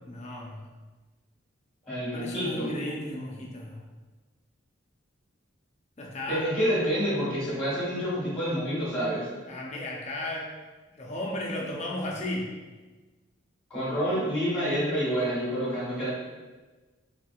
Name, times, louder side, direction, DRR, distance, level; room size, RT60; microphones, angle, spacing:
voice 1, 0.1-0.7 2.1-3.8 6.0-6.5 9.5-10.5 10.9-12.5, left 1 dB, 35° left, -2 dB, 0.6 m, -34 dB
voice 2, 1.9-2.7 6.3-9.3 13.7-16.1, equal, 5° left, -9 dB, 1.4 m, -28 dB
4.5 x 3.8 x 2.4 m, 1.3 s
head